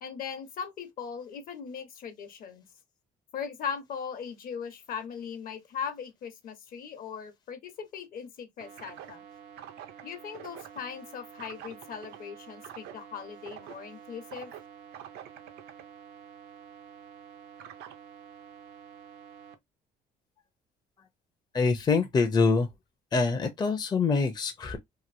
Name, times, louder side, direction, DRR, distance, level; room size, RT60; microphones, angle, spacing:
voice 1, 0.0-2.7 3.3-9.2 10.0-14.5, left 7 dB, 60° left, 0.9 m, -39 dB
sound 1, 8.6-19.5, right 9 dB, 80° right, 0.7 m, -47 dB
voice 2, 21.5-22.7 23.1-24.8, left 4 dB, 25° left, 0.5 m, -25 dB
3.0 x 2.6 x 2.5 m
cardioid pair, 110°, 17 cm